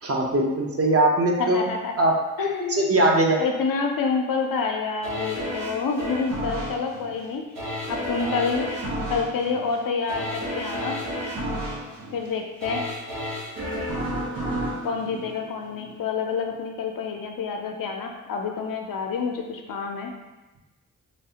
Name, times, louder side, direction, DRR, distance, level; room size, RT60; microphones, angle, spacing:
voice 1, 0.0-1.6 2.0-2.2 2.7-3.4, right 1 dB, 45° right, 0 dB, 0.6 m, -20 dB
voice 2, 1.4-1.9 2.4-2.9 3.4-7.5 7.9-8.7 9.1-11.0 12.1-12.8 14.8-20.1, left 5 dB, 85° left, 2 dB, 0.5 m, -28 dB
sound 1, 5.0-16.0 16.4-16.5, equal, 90° right, 0.8 m, -32 dB
3.2 x 2.4 x 2.7 m, 1.1 s
cardioid pair, 45°, 33 cm